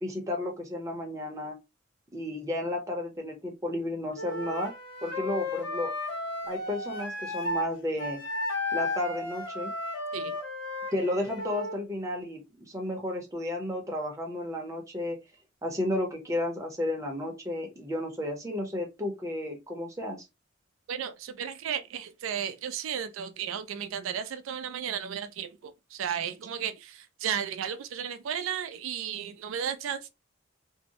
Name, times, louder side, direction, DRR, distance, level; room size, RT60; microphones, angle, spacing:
voice 1, 0.0-1.6 2.1-4.7 5.0-5.9 6.4-8.2 8.7-9.7 10.9-15.2 15.6-20.2, left 1 dB, 15° right, 0.6 m, -32 dB
Wind instrument woodwind instrument, 4.1-7.7 8.0-11.8, left 2 dB, 65° left, 0.7 m, -34 dB
voice 2, 20.9-30.1, right 8 dB, 85° right, 0.3 m, -34 dB
2.6 x 2.0 x 2.8 m
head